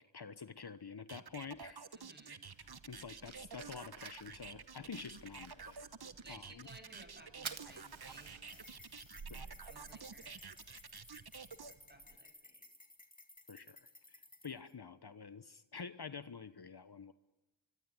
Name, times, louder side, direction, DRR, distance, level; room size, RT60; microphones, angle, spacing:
voice 1, 0.0-1.9 2.6-5.8 6.3-6.7 9.3-9.6 13.5-13.8 14.1-17.1, left 5 dB, 55° left, 13 dB, 1.2 m, -48 dB
sound 1, 1.1-11.7, right 5 dB, 55° right, 1.3 m, -50 dB
voice 2, 1.9-2.4 3.2-3.4 6.2-8.7 9.6-10.4 11.7-12.6, right 1 dB, 20° right, 6 dB, 7.6 m, -59 dB
Fire, 2.5-12.2, right 5 dB, 85° right, 1.7 m, -53 dB
sound 2, 8.3-14.7, left 2 dB, 20° left, 3.1 m, -58 dB
25.0 x 24.5 x 9.8 m, 1.0 s
wide cardioid pair, 50°, 46 cm